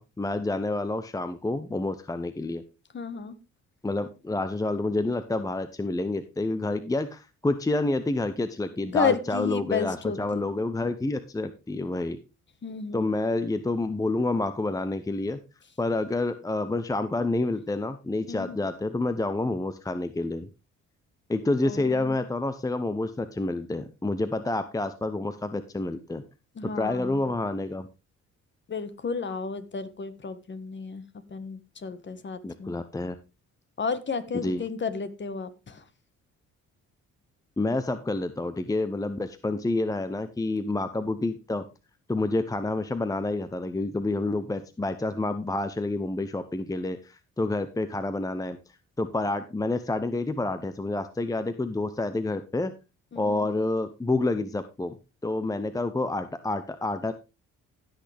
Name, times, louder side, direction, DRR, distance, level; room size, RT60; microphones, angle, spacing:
voice 1, 0.0-2.6 3.8-12.2 12.9-15.4 15.8-20.5 21.3-26.2 26.8-27.9 32.4-33.1 34.3-34.6 37.6-41.6 42.1-48.6 49.0-52.7 53.2-55.0 55.2-57.1, left 2 dB, 10° left, 11 dB, 0.7 m, -28 dB
voice 2, 2.9-3.3 8.8-10.5 12.6-13.1 18.3-18.6 21.6-22.2 26.5-27.3 28.7-31.0 31.3-32.7 33.8-35.8 53.1-53.5, left 5 dB, 40° left, 12 dB, 1.5 m, -32 dB
16.0 x 6.3 x 3.4 m, 0.28 s
cardioid pair, 90°, 30 cm